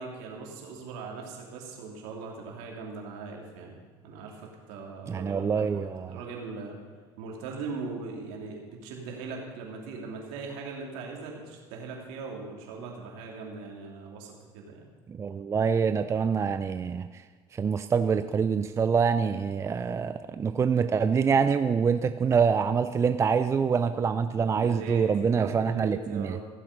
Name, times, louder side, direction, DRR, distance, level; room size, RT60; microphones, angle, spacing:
voice 1, 0.0-3.8 4.0-4.4 4.7-6.8 7.2-14.9 24.5-26.5, right 4 dB, 70° right, 0 dB, 2.9 m, -40 dB
voice 2, 5.1-6.2 15.1-17.1 17.6-26.4, right 6 dB, 25° right, 11 dB, 0.4 m, -25 dB
16.0 x 7.5 x 5.3 m, 1.4 s
supercardioid pair, 100°, 12 cm